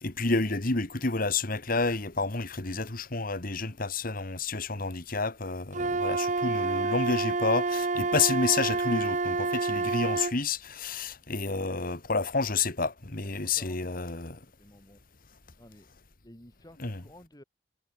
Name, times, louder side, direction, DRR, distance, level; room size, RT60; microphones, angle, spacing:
voice 1, 0.0-14.4 16.8-17.0, left 4 dB, 50° left, 1.9 m, -30 dB
Wind instrument woodwind instrument, 5.7-10.4, right 3 dB, 40° right, 1.1 m, -28 dB
voice 2, 13.2-15.0 15.6-15.9 16.2-17.4, left 1 dB, 20° left, 4.3 m, -54 dB
head